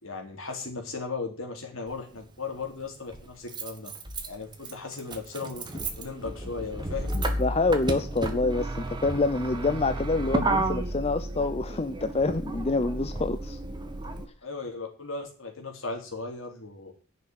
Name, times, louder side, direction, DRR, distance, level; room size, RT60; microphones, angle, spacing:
voice 1, 0.0-3.9 4.2-5.7 6.0-7.2 14.4-16.9, left 4 dB, 60° left, 2 dB, 3.7 m, -36 dB
Motor vehicle (road), 1.9-2.0 3.1-14.2, right 2 dB, 20° right, 1.7 m, -32 dB
voice 2, 7.1-13.6, left 3 dB, 25° left, 10 dB, 0.5 m, -27 dB
11.0 x 6.8 x 9.1 m, 0.37 s
head